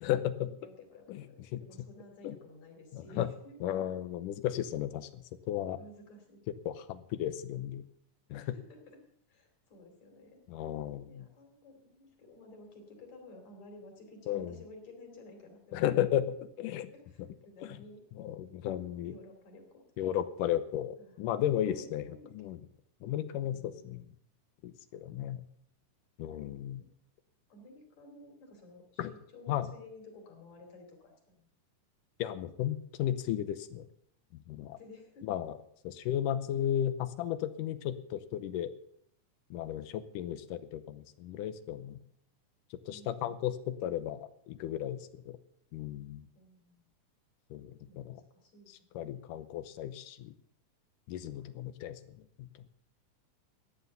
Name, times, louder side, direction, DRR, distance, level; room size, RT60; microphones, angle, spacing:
voice 1, 0.0-0.5 1.1-1.3 1.5-1.6 2.2-2.4 2.9-3.3 3.6-5.8 6.7-7.8 8.3-8.4 10.5-11.3 14.3-14.6 15.7-16.9 17.6-17.8 18.2-19.1 20.0-22.1 22.4-22.6 23.0-24.0 24.6-25.4 26.2-26.8 29.0-29.1 29.5-29.7 32.2-33.9 34.5-34.8 35.2-35.5 35.8-38.7 39.5-42.0 42.9-45.4 45.7-46.3 47.5-48.2 49.0-50.3 51.1-52.0 52.4-52.5, left 11 dB, 85° left, 13 dB, 2.4 m, -34 dB
voice 2, 0.6-3.6 5.8-6.4 8.3-8.8 9.3-10.4 11.1-16.1 16.9-18.0 18.6-19.9 21.0-21.4 21.7-22.3 23.4-23.8 24.9-25.0 26.2-26.4 26.8-26.9 27.5-31.5 34.7-35.3 42.9-43.4 46.3-46.9 47.6-48.9 51.3-51.5, left 2 dB, 55° left, 4 dB, 4.0 m, -54 dB
14.0 x 9.6 x 6.8 m, 0.68 s
omnidirectional pair, 3.7 m